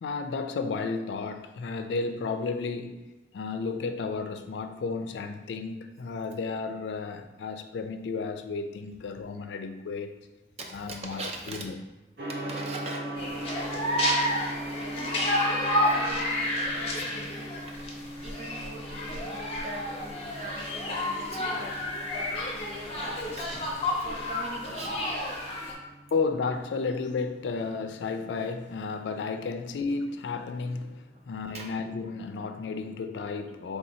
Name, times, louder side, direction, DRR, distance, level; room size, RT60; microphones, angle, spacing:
voice 1, 0.0-3.1 3.3-10.2 10.7-11.7 22.1-22.2 24.3-24.4 26.1-33.8, left 4 dB, 85° left, 0.3 m, -33 dB
voice 2, 10.6-11.6 12.3-13.6 13.9-17.5 18.2-23.5 24.0-25.1 31.5-31.7, right 2 dB, 35° right, 0.6 m, -42 dB
Gong, 12.2-31.1, right 1 dB, 75° right, 0.8 m, -42 dB
sound 1, 13.2-25.7, left 1 dB, 35° left, 0.6 m, -30 dB
3.4 x 2.7 x 4.2 m
head